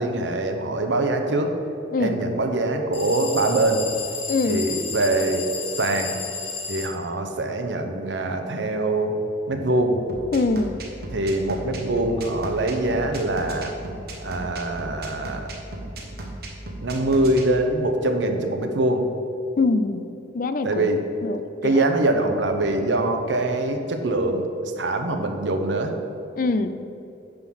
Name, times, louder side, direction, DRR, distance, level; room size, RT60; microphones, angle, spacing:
voice 1, 0.0-1.5 2.0-3.8 4.5-5.4 5.8-6.1 6.7-9.1 9.5-10.0 11.1-13.7 14.2-15.5 16.8-19.1 20.6-21.0 21.6-24.5 24.8-25.9, right 2 dB, 75° right, 5 dB, 0.8 m, -23 dB
Bell Factory Break, 2.9-6.9, left 5 dB, 30° left, 0.9 m, -32 dB
voice 2, 4.3-4.6 10.3-10.8 19.6-20.1 20.3-20.9 21.2-21.9 26.4-26.8, left 3 dB, 45° left, 11 dB, 0.4 m, -23 dB
sound 1, 10.1-17.4, right 1 dB, 55° right, 1.1 m, -35 dB
9.6 x 3.8 x 6.2 m, 2.8 s
head